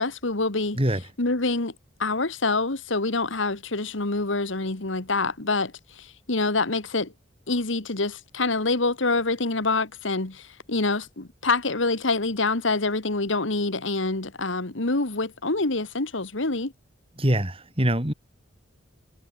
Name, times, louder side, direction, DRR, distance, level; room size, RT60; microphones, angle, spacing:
voice 1, 0.0-0.8 1.2-1.7 2.0-7.1 7.5-16.7, left 3 dB, 75° left, 2.0 m, -26 dB
voice 2, 17.2-18.1, right 1 dB, 30° right, 4.0 m, -23 dB
head